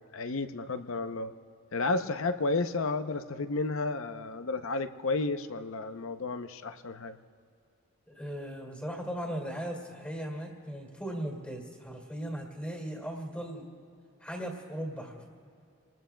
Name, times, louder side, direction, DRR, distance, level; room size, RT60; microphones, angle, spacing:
voice 1, 0.1-1.3 1.7-7.2, left 3 dB, 75° left, 9 dB, 0.7 m, -32 dB
voice 2, 8.1-13.6 14.2-15.3, equal, 5° left, 0 dB, 2.2 m, -38 dB
28.0 x 20.0 x 2.3 m, 2.5 s
head